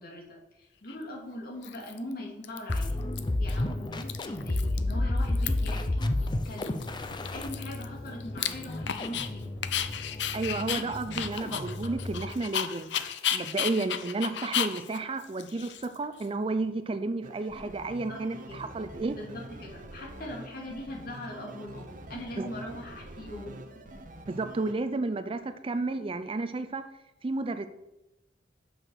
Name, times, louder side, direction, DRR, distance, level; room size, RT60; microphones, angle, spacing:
voice 1, 0.0-3.0 3.4-6.9 7.3-9.5 17.8-18.7 19.1-23.6, left 1 dB, 55° left, -2 dB, 2.4 m, -41 dB
Dog, 0.9-1.0 1.6-2.1 2.4-3.2 3.5-3.6 3.9-4.9 5.2-5.8 6.2-6.3 6.6-9.3 9.6-16.2, left 9 dB, 75° left, 0.6 m, -34 dB
sound 1, 2.7-12.4, left 1 dB, 25° left, 0.5 m, -32 dB
voice 2, 10.3-12.9 13.3-19.2 22.4-22.5 24.3-26.8 27.2-27.7, right 3 dB, 30° right, 10 dB, 0.4 m, -32 dB
sound 2, 17.2-24.7, right 1 dB, 50° right, 0.9 m, -45 dB
6.7 x 6.2 x 6.3 m, 0.95 s
head